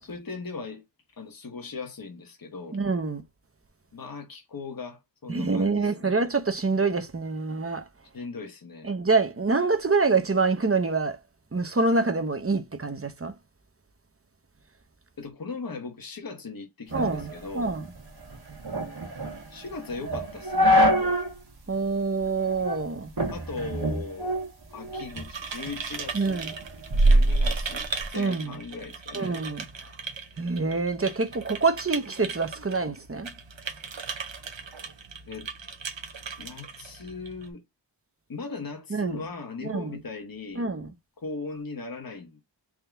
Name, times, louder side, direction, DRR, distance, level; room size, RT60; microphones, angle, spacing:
voice 1, 0.0-0.8 1.2-2.8 3.9-6.2 8.1-8.9 15.2-17.7 19.5-21.2 23.3-24.4 24.7-26.4 26.9-29.4 35.3-35.5 36.4-37.6 38.3-40.7 41.2-42.4, left 4 dB, 50° left, 1.0 m, -39 dB
voice 2, 2.7-3.2 5.3-7.8 8.9-11.2 11.5-13.3 16.9-17.3 17.6-17.8 21.7-23.1 26.1-26.5 28.2-28.5 29.1-29.6 30.4-33.3 38.9-39.2 39.6-39.9 40.6-40.9, right 3 dB, 30° right, 0.7 m, -26 dB
sound 1, 16.9-21.4 21.7-21.8 22.5-22.8 23.2-25.2 25.6-28.1, right 1 dB, 60° right, 1.3 m, -25 dB
sound 2, 24.8-37.5, right 5 dB, 85° right, 0.7 m, -38 dB
3.6 x 2.7 x 3.4 m
wide cardioid pair, 45°, 44 cm